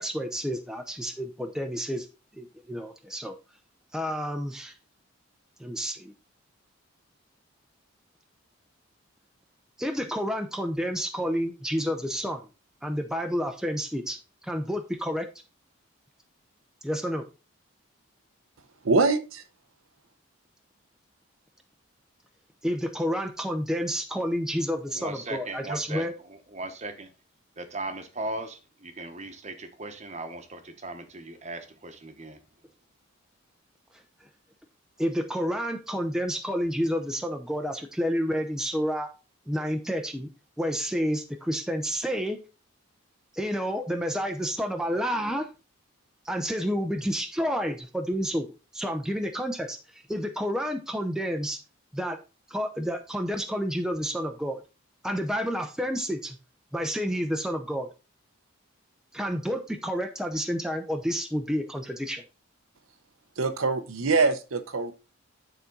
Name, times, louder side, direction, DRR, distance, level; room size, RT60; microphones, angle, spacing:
voice 1, 0.0-2.1 2.4-3.4 3.9-4.8 5.6-6.1 9.8-12.4 12.8-14.2 14.4-15.3 16.8-17.2 22.6-26.1 35.0-39.1 39.5-40.3 40.6-42.4 43.3-45.5 46.2-51.6 51.9-52.2 52.5-54.6 55.0-56.4 56.7-57.9 59.1-62.2, equal, 5° right, 0.6 m, -30 dB
voice 2, 18.8-19.4 63.4-64.9, right 3 dB, 70° right, 0.8 m, -24 dB
voice 3, 24.9-26.0 26.3-27.1 27.6-32.4, right 2 dB, 30° right, 1.0 m, -37 dB
9.5 x 4.2 x 3.8 m
head